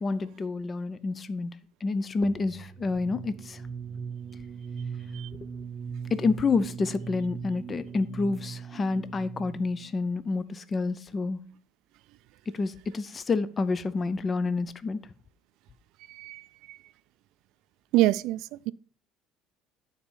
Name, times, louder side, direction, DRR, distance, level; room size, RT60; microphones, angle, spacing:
voice 1, 0.0-1.5 1.8-3.6 6.1-11.4 12.5-15.0, left 4 dB, 25° left, 0.5 m, -28 dB
sound 1, 2.2-9.9, right 6 dB, 20° right, 0.8 m, -39 dB
voice 2, 16.1-16.4 16.7-16.8 17.9-18.7, right 16 dB, 70° right, 0.3 m, -26 dB
9.6 x 4.3 x 5.4 m
cardioid pair, 145°, 0 cm